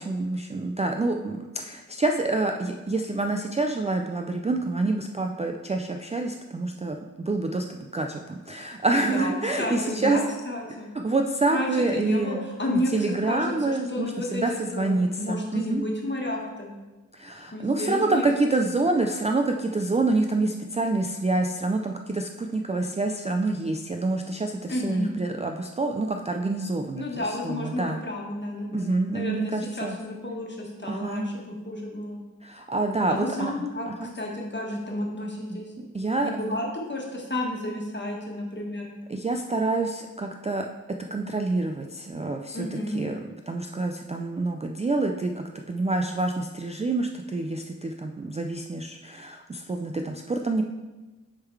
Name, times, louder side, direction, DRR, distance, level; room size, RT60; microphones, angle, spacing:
voice 1, 0.0-10.2 10.9-12.4 12.7-15.8 17.1-28.0 28.7-30.0 30.9-31.3 32.4-33.5 33.9-34.1 35.8-36.3 39.1-42.6 42.9-43.2 43.5-50.6, right 2 dB, 20° right, 3 dB, 0.3 m, -27 dB
voice 2, 8.9-10.2 10.4-10.9 11.5-14.4 14.7-16.7 17.5-18.3 24.7-25.1 27.0-32.2 33.1-35.7 36.2-38.9 42.5-43.0, left 1 dB, 30° left, -1 dB, 1.4 m, -31 dB
6.5 x 3.7 x 4.6 m, 1.2 s
wide cardioid pair, 75°, 34 cm